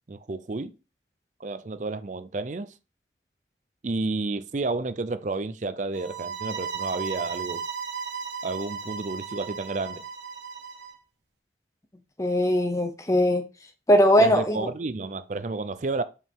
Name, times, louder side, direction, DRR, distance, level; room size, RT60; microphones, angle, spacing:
voice 1, 0.1-0.8 1.4-2.7 3.8-7.6 8.4-10.0 14.2-16.0, right 3 dB, 45° right, 0.5 m, -31 dB
sound 1, 5.9-10.9, right 6 dB, 85° right, 1.3 m, -35 dB
voice 2, 12.2-13.4 13.9-14.7, equal, 15° left, 0.7 m, -20 dB
5.5 x 4.8 x 3.6 m
head